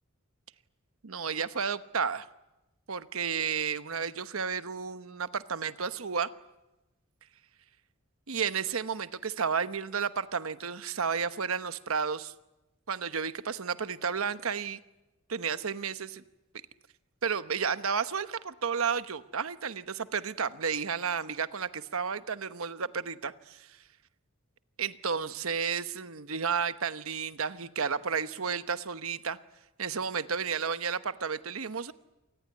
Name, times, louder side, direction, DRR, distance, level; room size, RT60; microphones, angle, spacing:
voice 1, 1.0-2.3 2.9-6.3 8.3-12.3 12.9-14.8 15.3-16.2 17.2-23.7 24.8-29.4 29.8-31.9, right 6 dB, 70° right, 12 dB, 1.0 m, -32 dB
27.0 x 19.5 x 9.6 m, 1.0 s
head